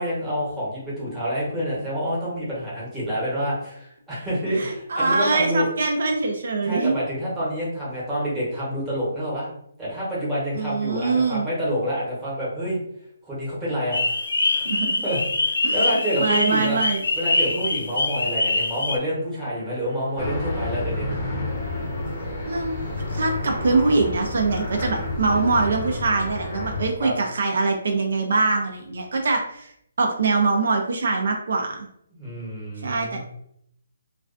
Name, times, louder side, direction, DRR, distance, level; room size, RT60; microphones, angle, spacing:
voice 1, 0.0-5.7 6.6-9.5 9.8-12.8 13.3-14.2 14.5-14.6 15.0-16.8 17.1-21.1 27.0-27.1 32.1-33.2, equal, 5° right, -8 dB, 0.9 m, -27 dB
voice 2, 4.6-7.0 10.5-11.5 14.7-15.0 15.6-15.9 16.2-17.0 22.5-22.7 23.1-29.7 30.0-31.9 32.8-33.2, right 3 dB, 65° right, 2 dB, 0.4 m, -23 dB
spring peepers, 13.9-19.0, left 2 dB, 90° left, 0.4 m, -24 dB
sound 1, 19.3-24.6, right 1 dB, 85° right, 1.0 m, -42 dB
sound 2, 20.2-26.9, left 2 dB, 30° left, 0.6 m, -30 dB
2.3 x 2.2 x 2.4 m, 0.71 s
hypercardioid pair, 165°, 0 cm